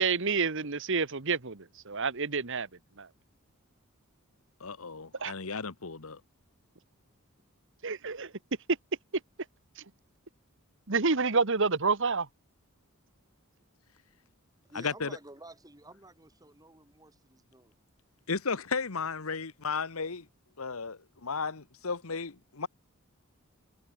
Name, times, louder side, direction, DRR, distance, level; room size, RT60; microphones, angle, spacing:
voice 1, 0.0-2.7 3.0-3.1 5.2-5.3 7.8-8.3 9.8-9.9 10.9-12.3, right 4 dB, 60° right, 1.5 m, -28 dB
voice 2, 4.6-6.2 14.7-15.2 18.3-20.3 20.6-22.7, left 5 dB, 75° left, 1.3 m, -34 dB
voice 3, 14.7-17.7, right 2 dB, 15° right, 7.6 m, -51 dB
head